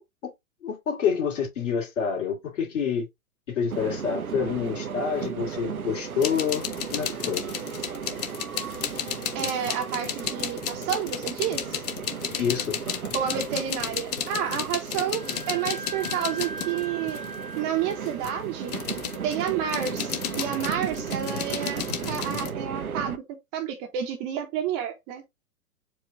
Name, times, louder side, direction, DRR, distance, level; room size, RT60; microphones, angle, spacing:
voice 1, 0.6-3.1 3.5-6.6 6.9-7.5 12.4-12.8, left 7 dB, 60° left, 2.3 m, -27 dB
sound 1, 3.7-23.2, right 7 dB, 80° right, 0.7 m, -35 dB
sound 2, 6.2-17.4 17.9-22.5, left 10 dB, 30° left, 0.5 m, -33 dB
voice 2, 9.3-11.8 13.1-17.2 17.6-18.7 19.2-23.2 23.5-25.2, right 9 dB, 25° right, 0.9 m, -30 dB
Wind instrument woodwind instrument, 15.0-22.4, right 3 dB, 5° left, 0.8 m, -42 dB
4.8 x 2.5 x 4.3 m
figure-of-eight pair, 110°, 42 cm